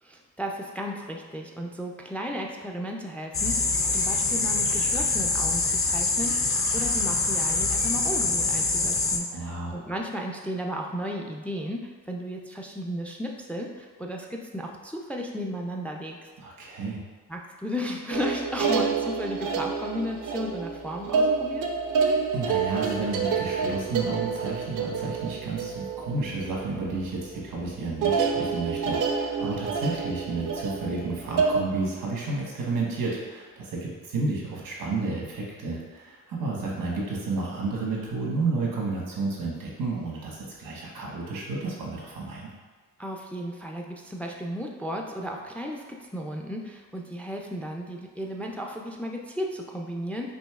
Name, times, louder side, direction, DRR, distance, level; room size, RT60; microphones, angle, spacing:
voice 1, 0.0-16.2 17.3-21.7 43.0-50.3, equal, 5° left, 1 dB, 0.3 m, -34 dB
sound 1, 3.3-9.2, left 3 dB, 40° left, 0.6 m, -25 dB
voice 2, 9.3-9.8 16.4-17.0 22.3-42.5, right 3 dB, 90° right, -3 dB, 1.1 m, -31 dB
sound 2, 18.1-26.9 27.2-27.6 28.0-31.6, right 5 dB, 70° right, 0.5 m, -28 dB
5.1 x 2.7 x 2.3 m, 1.3 s
cardioid pair, 85°, 33 cm